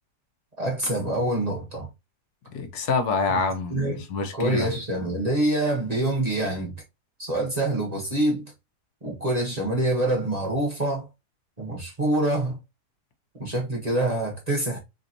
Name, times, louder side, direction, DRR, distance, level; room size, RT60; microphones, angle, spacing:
voice 1, 0.6-1.9 3.3-3.4 3.7-4.1 4.3-6.7 7.2-8.5 9.0-11.1 11.6-12.6 13.4-14.8, right 1 dB, 30° right, 1.1 m, -26 dB
voice 2, 2.5-4.7, left 4 dB, 75° left, 1.3 m, -26 dB
3.8 x 3.4 x 2.7 m
omnidirectional pair, 1.7 m